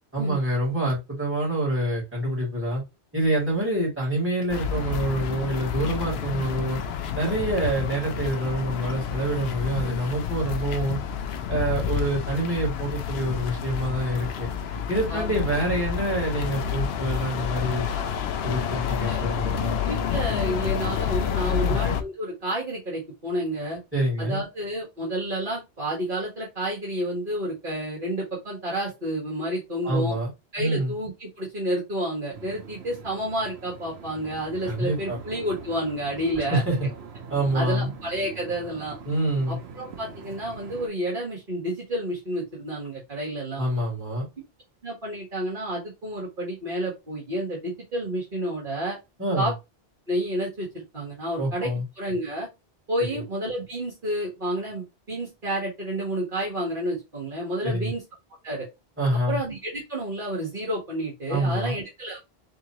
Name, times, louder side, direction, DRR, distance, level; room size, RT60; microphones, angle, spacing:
voice 1, 0.1-2.8 3.1-6.8 7.1-11.0 11.5-14.5 14.9-17.9 18.4-19.8 21.5-21.8 23.9-24.4 29.8-30.3 30.6-30.9 34.7-35.2 36.5-36.9 37.3-37.9 39.0-39.6 43.6-44.3 49.2-49.5 51.4-51.8 53.1-53.2 57.6-57.9 59.0-59.4 61.3-61.7, right 1 dB, 10° right, -6 dB, 2.7 m, -26 dB
sound 1, 4.5-22.0, left 8 dB, 80° left, 0.8 m, -29 dB
voice 2, 19.8-23.8 24.2-30.2 30.5-36.6 37.5-39.0 39.5-43.6 44.8-49.0 49.4-49.5 50.1-51.7 52.0-52.5 52.9-58.0 58.4-58.7 59.3-62.2, right 1 dB, 55° right, -4 dB, 1.8 m, -30 dB
sound 2, 32.3-40.9, right 5 dB, 80° right, 1.0 m, -43 dB
3.8 x 3.6 x 2.9 m, 0.23 s
omnidirectional pair, 1.1 m